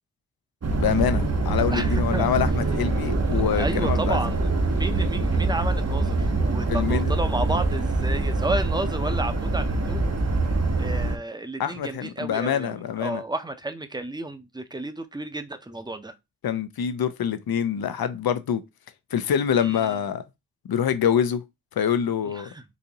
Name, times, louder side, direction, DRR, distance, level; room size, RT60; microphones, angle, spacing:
sound 1, 0.6-11.2, right 2 dB, 45° right, 0.8 m, -24 dB
voice 1, 0.8-4.2 6.7-7.1 11.6-13.2 16.4-18.6 19.1-20.2 20.7-21.4 21.8-22.5, left 8 dB, 80° left, 0.5 m, -25 dB
voice 2, 1.7-2.3 3.3-10.0 10.8-16.1 19.6-20.0 22.3-22.6, right 2 dB, 10° right, 0.6 m, -32 dB
4.0 x 2.5 x 2.8 m
wide cardioid pair, 45°, 36 cm